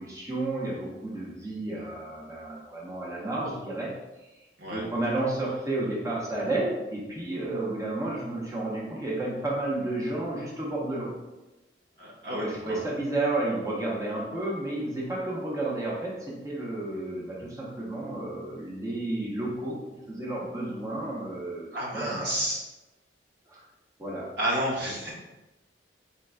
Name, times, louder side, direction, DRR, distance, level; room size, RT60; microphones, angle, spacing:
voice 1, 0.0-3.9 4.6-11.1 12.3-19.8 20.1-22.3 23.5-23.6 24.0-24.3, right 2 dB, 20° right, -5 dB, 0.8 m, -31 dB
voice 2, 12.0-12.8 16.9-17.5 21.7-22.6 24.4-25.1, right 1 dB, 70° right, -4 dB, 1.1 m, -31 dB
4.3 x 3.7 x 2.2 m, 1.0 s
head